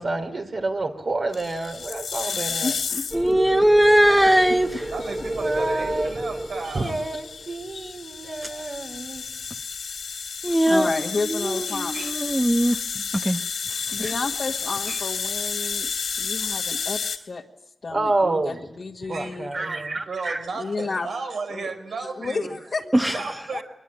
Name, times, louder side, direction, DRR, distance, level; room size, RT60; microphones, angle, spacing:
voice 1, 0.0-2.7 5.4-6.1 6.7-9.2 17.9-18.6 19.0-20.5, right 2 dB, 55° right, 3.3 m, -28 dB
sound 1, 1.3-3.3 4.4-17.2, left 5 dB, 85° left, 3.2 m, -31 dB
voice 2, 2.6-3.4 5.0-5.1 7.3-7.4 7.7-8.0 10.6-12.0 13.9-15.9 16.2-17.4 17.8-19.6 20.6-21.1 21.5-21.7 22.0-23.2 23.5-23.6, left 4 dB, 60° left, 1.8 m, -32 dB
voice 3, 3.1-4.8 10.4-11.0 11.3-12.8 13.2-13.4 14.0-14.1 22.9-23.2, right 1 dB, 10° right, 1.0 m, -20 dB
sound 2, 3.1-7.5, right 1 dB, 35° right, 2.3 m, -31 dB
voice 4, 4.9-7.0 11.7-12.1 14.9-15.0 19.1-19.4 20.1-22.5 23.0-23.6, right 4 dB, 85° right, 4.5 m, -34 dB
24.0 x 21.0 x 8.9 m
wide cardioid pair, 80°, 0 cm